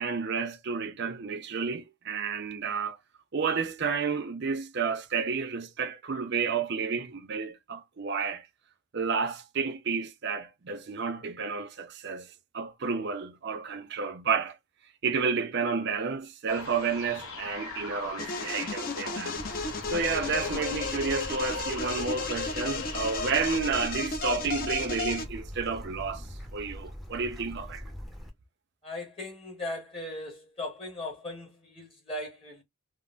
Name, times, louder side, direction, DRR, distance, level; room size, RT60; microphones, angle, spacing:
voice 1, 0.0-3.0 3.3-8.5 8.9-12.3 12.5-14.6 15.0-19.4 19.9-26.3 26.5-27.8, right 5 dB, 50° right, 0.5 m, -31 dB
sound 1, 16.5-23.6, left 3 dB, 75° left, 0.8 m, -40 dB
sound 2, 18.2-25.3, left 4 dB, 40° left, 0.6 m, -34 dB
Bird / Stream, 19.4-28.3, equal, ahead, 0.6 m, -42 dB
voice 2, 28.8-32.6, left 1 dB, 25° left, 1.0 m, -38 dB
3.7 x 2.1 x 2.4 m
head